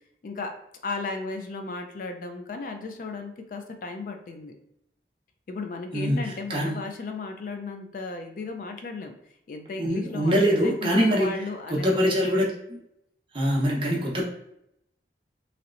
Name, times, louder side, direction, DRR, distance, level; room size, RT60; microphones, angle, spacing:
voice 1, 0.8-4.5 5.5-9.2 9.5-12.5, left 3 dB, 50° left, 5 dB, 0.3 m, -35 dB
voice 2, 5.9-6.7 9.8-11.3 11.7-12.8 13.3-14.2, equal, 30° right, -3 dB, 0.7 m, -24 dB
3.0 x 2.8 x 2.5 m, 0.78 s
head